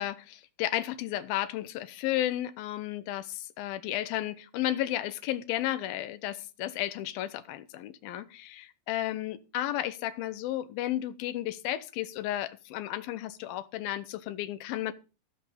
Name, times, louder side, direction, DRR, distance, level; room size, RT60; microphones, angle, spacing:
voice 1, 0.0-14.9, left 13 dB, 80° left, 2.5 m, -33 dB
16.0 x 7.1 x 3.9 m
omnidirectional pair, 4.4 m